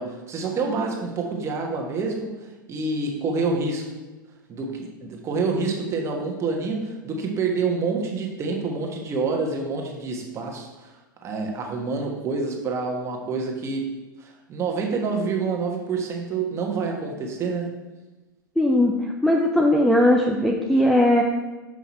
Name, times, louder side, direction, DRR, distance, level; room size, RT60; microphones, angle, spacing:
voice 1, 0.0-2.3 2.7-4.0 4.5-10.9 11.2-13.9 14.2-17.7, right 4 dB, 25° right, 1 dB, 1.4 m, -27 dB
voice 2, 18.6-21.2, left 1 dB, ahead, -1 dB, 0.6 m, -19 dB
6.3 x 5.4 x 4.3 m, 1.1 s
figure-of-eight pair, 95°, 11 cm